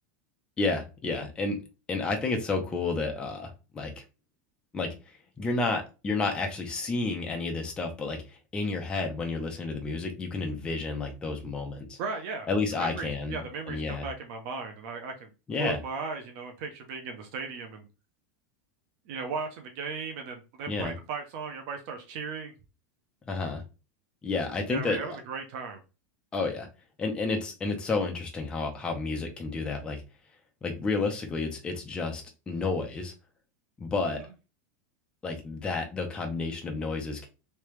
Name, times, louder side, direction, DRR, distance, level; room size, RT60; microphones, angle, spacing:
voice 1, 0.6-1.6 1.9-4.0 4.7-8.2 8.5-12.0 12.5-14.1 15.5-15.8 20.7-20.9 23.2-23.6 24.2-25.2 26.3-26.7 27.0-30.0 30.6-33.1 33.8-34.2 35.2-37.3, left 3 dB, 10° left, 3 dB, 0.5 m, -31 dB
voice 2, 12.0-12.5 12.8-15.3 15.6-17.8 19.1-22.5 24.7-25.8, right 4 dB, 40° right, 4 dB, 0.7 m, -36 dB
3.2 x 2.8 x 3.1 m, 0.30 s
supercardioid pair, 175°, 9 cm